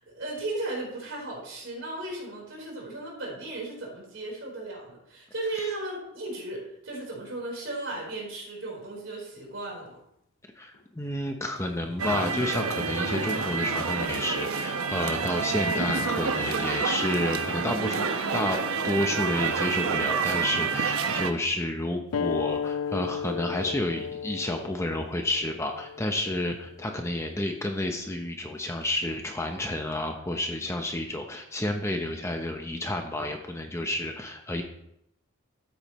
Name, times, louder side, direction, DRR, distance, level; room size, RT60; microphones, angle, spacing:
voice 1, 0.0-10.0, right 2 dB, 60° right, -3 dB, 4.2 m, -36 dB
sound 1, 7.9-8.2 8.9-9.0 9.3-9.4 10.7-10.8 11.5-13.8 14.2-14.3 15.2-15.3 15.6-16.0 16.6-16.8 18.0-18.9 19.8-20.1, right 1 dB, 60° left, 1.8 m, -47 dB
voice 2, 10.6-34.6, left 1 dB, 15° left, 4 dB, 0.7 m, -30 dB
sound 2, 12.0-21.3, right 5 dB, 80° right, 0.8 m, -28 dB
sound 3, 22.1-27.3, left 7 dB, 85° left, 0.4 m, -34 dB
13.0 x 8.6 x 3.1 m, 0.78 s
head